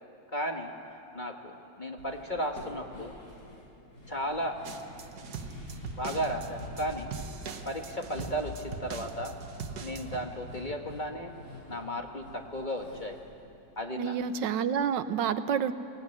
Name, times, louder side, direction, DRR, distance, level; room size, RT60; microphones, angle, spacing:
voice 1, 0.3-0.7 1.1-3.1 4.1-4.6 5.9-7.1 7.6-9.4 9.8-11.3 11.7-13.2 13.8-14.2, equal, 30° left, 3 dB, 1.4 m, -34 dB
sound 1, 2.0-14.3 14.5-14.6 15.0-15.1, left 1 dB, 55° left, 7.3 m, -46 dB
sound 2, 4.6-10.2, right 6 dB, 65° right, 1.6 m, -42 dB
voice 2, 14.0-15.7, right 7 dB, 80° right, 12 dB, 1.5 m, -28 dB
23.0 x 18.0 x 9.8 m, 2.7 s
omnidirectional pair, 2.0 m